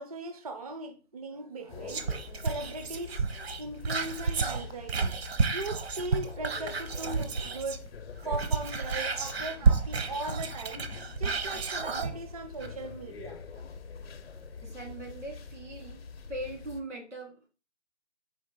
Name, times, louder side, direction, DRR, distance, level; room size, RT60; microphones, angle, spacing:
voice 1, 0.0-5.1 5.5-7.9 8.2-10.9 11.2-13.4, right 2 dB, 35° right, 0.4 m, -39 dB
sound 1, 1.7-16.8, left 5 dB, 60° left, 0.7 m, -45 dB
Whispering, 1.9-7.9 8.2-12.1 12.6-12.7, right 5 dB, 60° right, 0.7 m, -30 dB
voice 2, 8.5-9.4 13.5-13.6 14.6-16.0 16.3-17.5, right 1 dB, 85° right, 2.3 m, -41 dB
4.4 x 2.8 x 3.9 m
hypercardioid pair, 160°, 35 cm